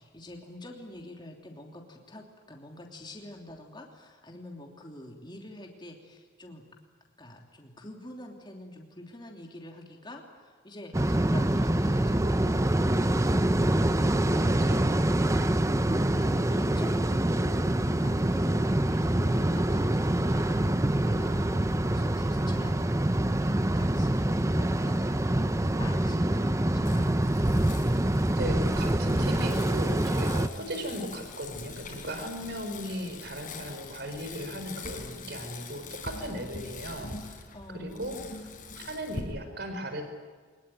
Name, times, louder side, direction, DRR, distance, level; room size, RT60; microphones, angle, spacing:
voice 1, 0.0-6.6 7.2-14.1 15.4-27.2 30.5-30.8 37.5-38.3, left 1 dB, 25° left, 1 dB, 3.1 m, -46 dB
sound 1, 10.9-30.5, right 1 dB, 15° right, 0.7 m, -25 dB
voice 2, 14.2-15.2 28.4-38.2 38.8-40.0, equal, 55° right, 7 dB, 4.4 m, -37 dB
Bicycle, 26.9-39.2, left 3 dB, 45° left, 4.7 m, -43 dB
24.0 x 21.0 x 9.2 m, 1.5 s
head